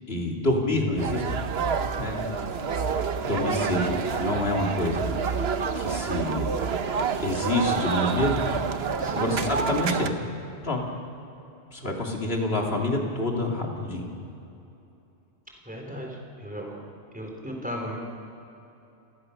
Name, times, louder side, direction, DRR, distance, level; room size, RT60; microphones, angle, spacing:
voice 1, 0.1-1.2 2.0-2.2 3.2-5.0 5.8-6.5 7.2-8.6 9.1-10.1 10.6-10.8 11.7-14.1, left 1 dB, 55° left, 0 dB, 3.2 m, -27 dB
sound 1, 1.0-10.1, right 5 dB, 60° right, 1.2 m, -28 dB
voice 2, 9.0-9.3 15.7-16.8 17.1-18.0, equal, 5° right, 0 dB, 3.9 m, -36 dB
29.5 x 15.0 x 6.7 m, 2.8 s
omnidirectional pair, 1.2 m